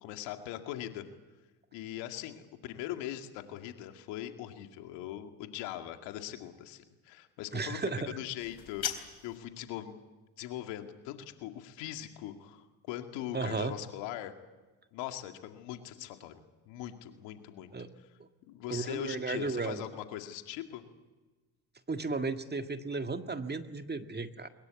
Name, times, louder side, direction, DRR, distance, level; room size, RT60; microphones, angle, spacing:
voice 1, 0.0-1.1 1.7-8.9 9.2-9.9 10.4-14.3 14.9-17.7 18.5-20.8, left 12 dB, 80° left, 6 dB, 2.3 m, -41 dB
voice 2, 7.5-8.2 13.3-13.7 17.7-17.9 18.7-19.8 21.9-24.5, right 3 dB, 25° right, 7 dB, 1.9 m, -34 dB
sound 1, 8.4-9.4, left 9 dB, 55° left, 3.8 m, -38 dB
22.5 x 21.5 x 8.4 m, 1.2 s
hypercardioid pair, 65°, 42 cm